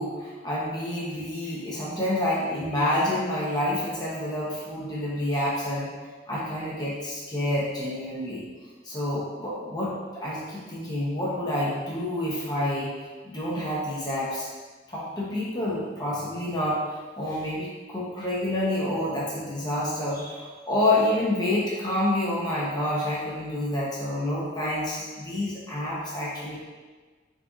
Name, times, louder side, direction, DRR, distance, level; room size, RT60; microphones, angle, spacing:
voice 1, 0.0-5.9 6.3-8.5 8.8-12.9 13.2-14.5 14.9-26.6, left 1 dB, 20° left, -7 dB, 0.8 m, -28 dB
4.1 x 3.8 x 2.4 m, 1.4 s
head